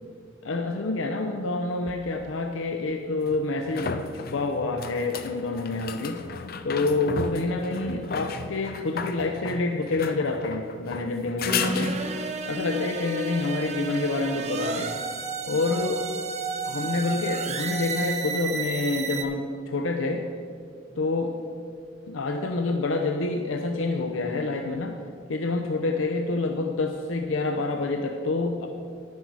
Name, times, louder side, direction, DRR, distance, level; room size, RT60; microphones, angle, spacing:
voice 1, 0.4-3.9 4.3-6.2 6.6-12.0 12.4-15.0 15.5-16.0 16.6-20.3 21.0-21.3 22.1-25.0 25.3-28.7, left 3 dB, 90° left, 4 dB, 0.7 m, -27 dB
sound 1, 1.9-2.0 3.3-12.4 15.8-15.9, left 5 dB, 50° left, 0.5 m, -34 dB
sound 2, 11.4-19.2, right 3 dB, 35° right, 0.7 m, -32 dB
10.5 x 9.6 x 4.7 m, 2.3 s
head